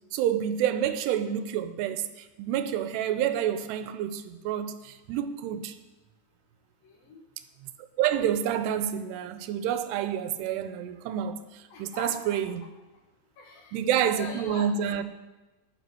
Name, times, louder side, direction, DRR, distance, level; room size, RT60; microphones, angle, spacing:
voice 1, 0.1-5.7 8.0-12.6 13.7-15.0, right 9 dB, 85° right, 2.7 m, -28 dB
voice 2, 6.8-7.2 11.7-12.4 13.4-13.8 14.2-14.7, left 2 dB, 65° left, 2.7 m, -42 dB
11.0 x 9.4 x 6.2 m
omnidirectional pair, 4.9 m